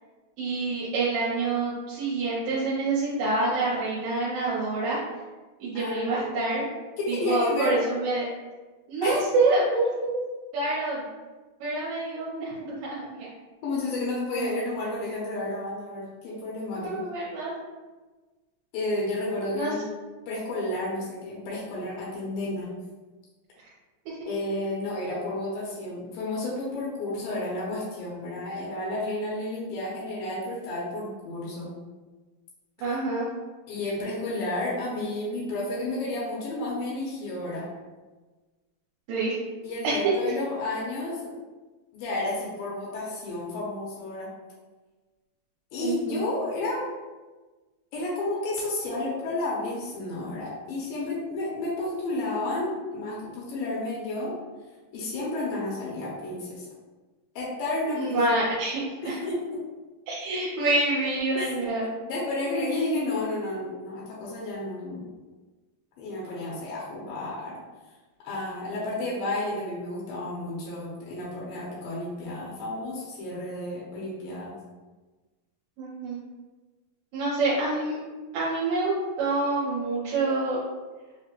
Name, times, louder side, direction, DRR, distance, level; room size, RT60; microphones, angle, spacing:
voice 1, 0.4-5.0 5.6-6.7 7.1-8.3 8.9-10.2 10.5-11.0 11.6-13.3 16.8-17.5 19.5-19.7 32.8-33.3 39.1-39.4 39.8-40.0 45.8-46.2 58.0-59.2 60.1-61.8 75.8-76.2 77.1-78.0 78.3-80.6, right 2 dB, 75° right, -7 dB, 2.2 m, -27 dB
voice 2, 5.7-6.4 7.0-7.8 9.0-9.2 13.6-17.0 18.7-19.8 20.3-22.7 24.3-31.7 33.7-37.7 39.6-41.3 41.9-44.3 45.7-46.9 47.9-54.3 54.9-56.7 57.4-58.2 59.0-59.4 61.4-61.5 62.0-65.1 66.0-67.6 68.2-74.5, left 2 dB, 80° left, -5 dB, 2.4 m, -31 dB
5.5 x 2.1 x 2.9 m, 1.3 s
omnidirectional pair, 4.1 m